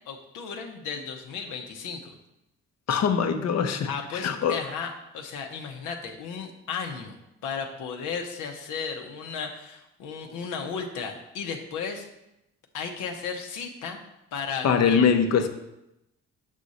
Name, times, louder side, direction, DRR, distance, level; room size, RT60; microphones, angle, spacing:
voice 1, 0.1-2.2 3.9-7.2 7.4-12.1 12.7-14.0 14.3-15.1, left 6 dB, 90° left, 3 dB, 0.9 m, -34 dB
voice 2, 2.9-4.6 14.6-15.5, left 6 dB, 60° left, 8 dB, 0.8 m, -23 dB
7.3 x 5.0 x 4.1 m, 0.88 s
cardioid pair, 90°, 30 cm